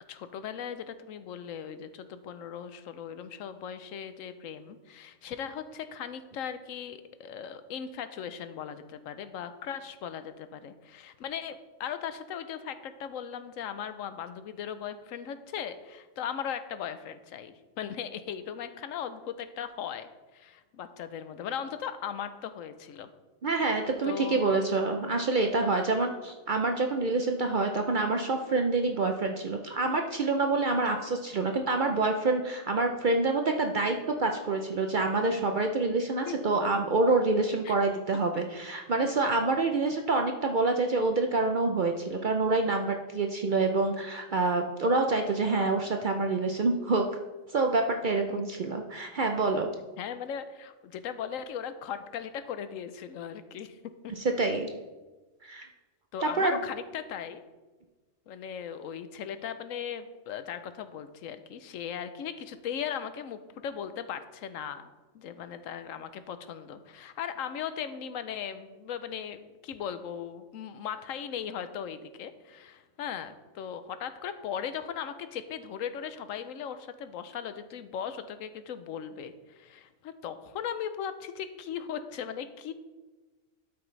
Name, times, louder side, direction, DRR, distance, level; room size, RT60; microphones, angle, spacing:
voice 1, 0.1-23.1 24.0-24.6 36.3-36.4 36.7-36.8 37.6-37.8 48.3-48.6 50.0-53.8 56.1-57.4 58.3-82.7, left 8 dB, 80° left, 11 dB, 1.0 m, -38 dB
voice 2, 23.4-47.0 47.5-49.7 54.2-54.7 55.4-55.7 56.2-56.6, right 3 dB, 55° right, 4 dB, 0.5 m, -27 dB
12.5 x 6.0 x 3.2 m, 1.2 s
omnidirectional pair, 1.4 m